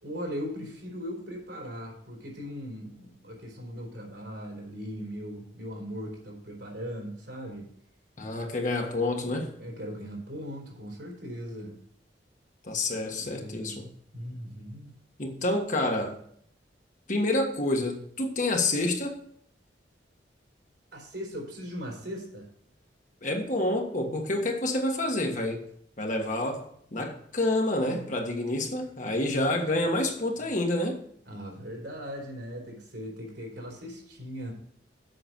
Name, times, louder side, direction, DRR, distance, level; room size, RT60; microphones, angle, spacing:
voice 1, 0.0-7.7 9.6-11.8 12.9-13.8 14.1-15.0 15.4-15.5 20.9-22.5 29.6-29.7 31.3-34.5, equal, 75° right, -1 dB, 3.8 m, -39 dB
voice 2, 8.2-9.5 12.6-13.8 15.2-16.2 17.1-19.2 23.2-25.6 26.0-31.0, left 2 dB, 45° left, 3 dB, 1.5 m, -28 dB
7.9 x 5.9 x 7.5 m, 0.66 s
head